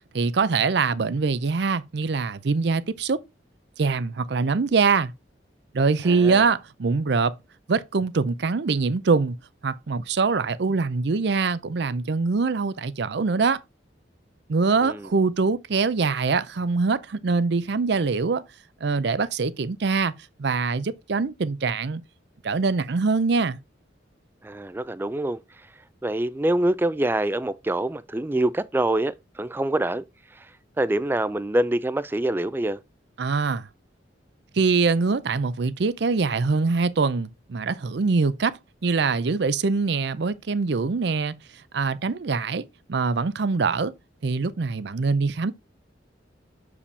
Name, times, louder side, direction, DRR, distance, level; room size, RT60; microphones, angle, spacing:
voice 1, 0.1-3.2 3.8-5.1 5.7-7.3 7.7-9.4 9.6-13.6 14.5-18.4 18.8-20.1 20.4-22.0 22.4-23.6 33.2-33.7 34.5-41.3 41.7-43.9 44.2-45.5, right 4 dB, 65° right, 0.5 m, -23 dB
voice 2, 6.0-6.4 14.8-15.1 24.4-25.4 26.0-30.0 30.4-30.5 30.8-32.8, right 1 dB, 10° right, 0.3 m, -25 dB
7.0 x 4.9 x 3.3 m
head